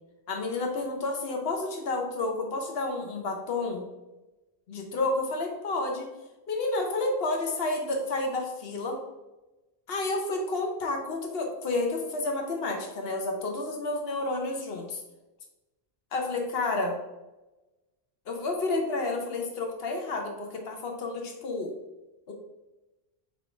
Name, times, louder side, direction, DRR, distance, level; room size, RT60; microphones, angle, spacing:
voice 1, 0.3-3.9 4.7-6.0 6.5-9.0 9.9-15.0 16.1-17.0 18.3-21.7 22.3-22.4, left 2 dB, 70° left, 2 dB, 1.2 m, -30 dB
4.7 x 4.0 x 5.1 m, 1.0 s
omnidirectional pair, 1.0 m